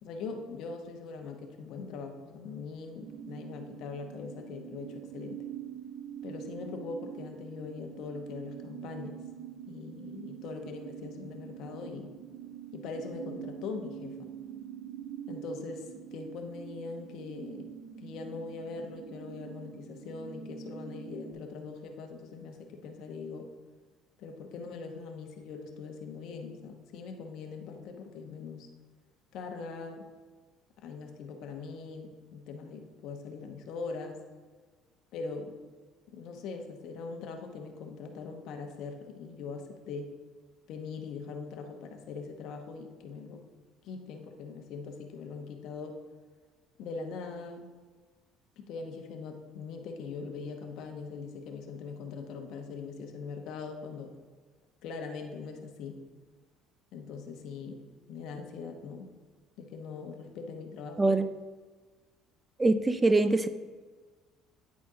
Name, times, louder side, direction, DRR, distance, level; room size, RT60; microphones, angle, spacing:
voice 1, 0.0-5.4 6.2-9.2 9.7-12.1 12.7-14.3 15.3-17.7 18.0-23.5 24.2-28.7 29.3-30.1 30.8-34.2 35.1-35.6 36.1-40.1 40.7-43.5 43.8-46.0 46.8-47.7 48.6-54.2 54.8-56.0 56.9-59.1 59.6-61.1, left 4 dB, 65° left, 4 dB, 1.0 m, -41 dB
sound 1, 3.0-21.3, right 9 dB, 75° right, 0.8 m, -45 dB
voice 2, 62.6-63.5, right 2 dB, 15° right, 11 dB, 0.4 m, -23 dB
9.5 x 4.2 x 3.7 m, 1.4 s
supercardioid pair, 95°, 0 cm